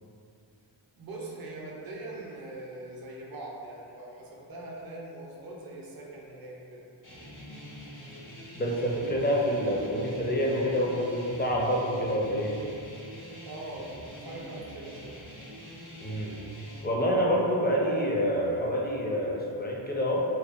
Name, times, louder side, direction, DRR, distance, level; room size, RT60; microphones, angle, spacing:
voice 1, 1.0-6.9 13.4-15.2, right 2 dB, 50° right, -3 dB, 0.5 m, -42 dB
sound 1, 7.0-16.8, equal, 75° left, 1.1 m, -45 dB
voice 2, 8.5-12.6 16.0-16.3 16.8-20.3, equal, 20° left, -3 dB, 0.4 m, -27 dB
2.6 x 2.2 x 2.4 m, 2.5 s
wide cardioid pair, 45°, 47 cm